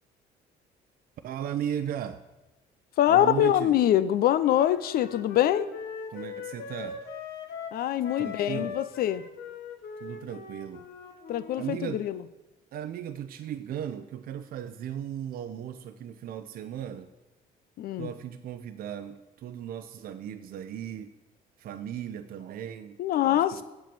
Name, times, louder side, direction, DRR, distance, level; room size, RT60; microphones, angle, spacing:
voice 1, 1.2-2.2 3.1-3.7 6.1-7.0 8.2-8.8 10.0-10.9 11.6-12.0 12.7-17.1 18.0-21.1 21.6-23.6, right 9 dB, 60° right, 8 dB, 0.6 m, -36 dB
voice 2, 3.0-5.7 7.7-9.2 11.3-12.2 17.8-18.1 23.0-23.6, left 11 dB, 65° left, 15 dB, 0.6 m, -24 dB
Wind instrument woodwind instrument, 4.4-11.8, left 6 dB, 85° left, 1.2 m, -40 dB
7.7 x 7.6 x 6.8 m, 1.1 s
cardioid pair, 110°, 17 cm